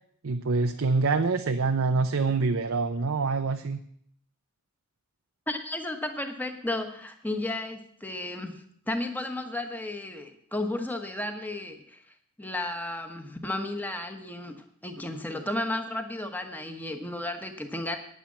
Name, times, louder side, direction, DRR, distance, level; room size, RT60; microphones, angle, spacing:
voice 1, 0.2-3.8, right 4 dB, 70° right, 7 dB, 0.6 m, -25 dB
voice 2, 5.5-12.0 12.4-18.0, left 1 dB, 10° left, 5 dB, 1.2 m, -33 dB
9.9 x 9.0 x 7.3 m, 0.65 s
head